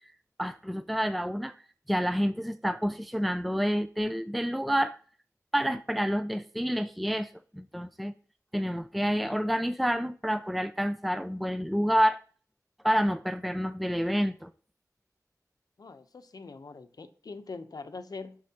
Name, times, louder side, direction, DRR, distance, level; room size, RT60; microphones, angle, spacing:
voice 1, 0.4-1.5 1.9-5.0 5.5-8.1 8.5-12.2 12.8-14.5, equal, ahead, 0.4 m, -28 dB
voice 2, 15.8-18.4, left 4 dB, 80° left, 0.8 m, -43 dB
9.5 x 6.4 x 2.9 m
wide cardioid pair, 65°, 6 cm